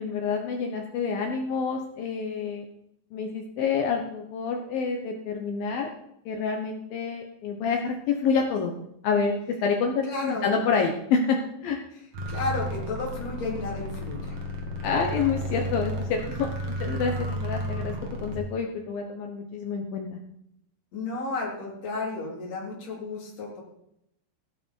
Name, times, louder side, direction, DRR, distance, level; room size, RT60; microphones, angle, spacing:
voice 1, 0.0-2.6 3.1-5.9 6.3-8.8 9.0-9.4 9.6-11.4 11.6-11.8 14.8-17.9 18.2-20.2, left 5 dB, 70° left, 2 dB, 2.2 m, -28 dB
voice 2, 10.0-10.5 11.9-12.0 12.3-14.4 20.9-23.6, left 3 dB, 35° left, -3 dB, 4.5 m, -32 dB
sound 1, 12.1-18.4, right 1 dB, 45° right, 2.3 m, -33 dB
16.5 x 11.0 x 4.6 m, 0.78 s
omnidirectional pair, 5.6 m